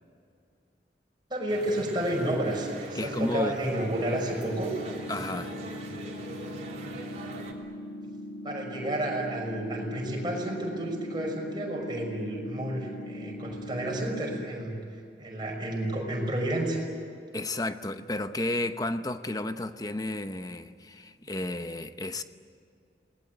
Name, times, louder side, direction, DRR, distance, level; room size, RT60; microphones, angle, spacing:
voice 1, 1.3-4.7 8.4-14.7 15.2-16.8, right 1 dB, 25° right, 6.0 m, -31 dB
sound 1, 1.5-7.5, right 1 dB, 40° right, 3.3 m, -41 dB
voice 2, 2.9-3.5 5.1-5.6 17.3-22.2, left 2 dB, 20° left, 0.9 m, -32 dB
sound 2, 4.4-14.4, left 1 dB, 85° left, 1.7 m, -40 dB
27.0 x 20.0 x 9.4 m
head